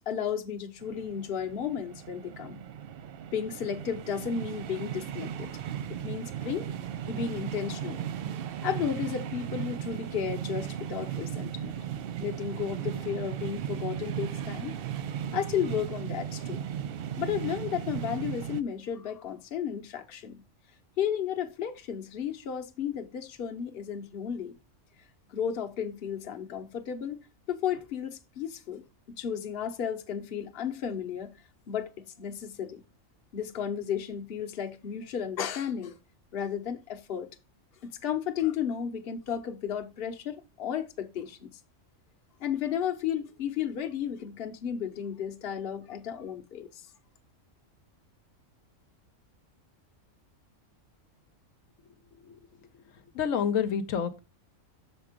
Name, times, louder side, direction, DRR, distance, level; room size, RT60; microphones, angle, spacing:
voice 1, 0.0-2.6 3.3-5.5 5.9-6.7 7.1-8.0 8.6-11.8 12.2-14.8 15.3-16.6 17.2-20.4 21.0-24.6 25.3-31.3 31.7-32.8 33.3-36.0 36.3-37.3 37.8-41.6 42.4-46.8, left 8 dB, 50° left, 1.0 m, -33 dB
sound 1, 0.8-18.6, right 9 dB, 65° right, 0.6 m, -36 dB
voice 2, 53.1-54.2, left 7 dB, 80° left, 1.1 m, -29 dB
6.9 x 4.4 x 4.9 m
omnidirectional pair, 1.4 m